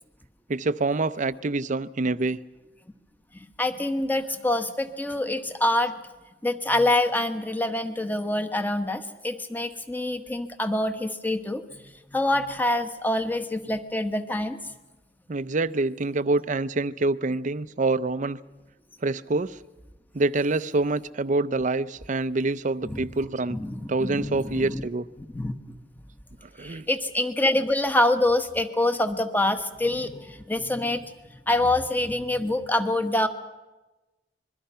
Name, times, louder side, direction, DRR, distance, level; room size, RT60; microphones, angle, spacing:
voice 1, 0.5-2.4 15.3-18.4 19.0-19.6 20.1-23.6 23.9-25.0 26.6-26.9, right 2 dB, 45° right, 0.6 m, -26 dB
voice 2, 3.3-5.9 6.4-14.6 22.8-23.1 23.5-24.9 25.3-25.5 26.6-31.0 31.5-33.3, left 1 dB, 10° left, 1.3 m, -26 dB
26.0 x 22.0 x 5.7 m
head